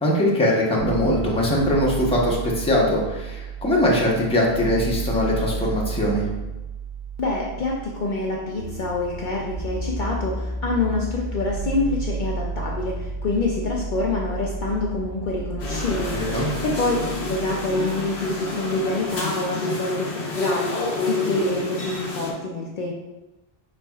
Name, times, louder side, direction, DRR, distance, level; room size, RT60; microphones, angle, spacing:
voice 1, 0.0-6.3 16.1-16.5, left 1 dB, 5° left, -4 dB, 0.8 m, -21 dB
sound 1, 0.8-18.7, right 3 dB, 45° right, 1.0 m, -32 dB
voice 2, 7.2-16.2 16.6-16.9 17.3-22.9, left 2 dB, 55° left, -2 dB, 0.7 m, -26 dB
sound 2, 15.6-22.3, left 3 dB, 75° left, 1.1 m, -29 dB
5.1 x 4.3 x 2.3 m, 1.1 s
omnidirectional pair, 1.1 m